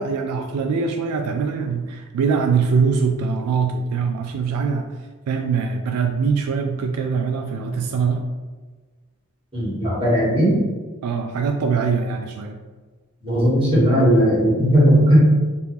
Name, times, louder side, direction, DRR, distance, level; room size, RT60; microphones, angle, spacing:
voice 1, 0.0-4.9 5.3-8.2 11.0-12.6, right 5 dB, 80° right, 6 dB, 0.3 m, -22 dB
voice 2, 9.5-10.5 13.2-15.2, equal, 25° right, -7 dB, 1.3 m, -17 dB
3.4 x 2.6 x 3.0 m, 1.3 s
head